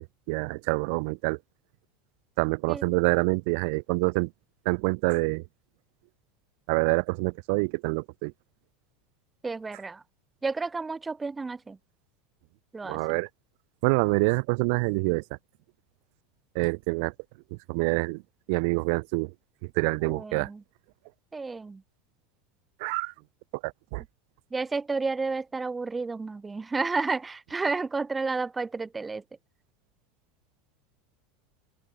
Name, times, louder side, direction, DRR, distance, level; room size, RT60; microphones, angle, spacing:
voice 1, 0.0-1.4 2.4-4.3 4.7-5.4 6.7-8.3 12.8-13.3 13.8-15.2 16.5-17.1 17.5-18.2 18.5-19.3 19.6-20.5 22.8-23.1 23.6-24.0, right 32 dB, 60° right, 2.3 m, -26 dB
voice 2, 9.4-10.0 10.4-11.8 12.7-13.2 20.0-20.6 21.3-21.8 24.5-29.2, right 4 dB, 15° right, 2.9 m, -31 dB
open air
figure-of-eight pair, 80°, 0 cm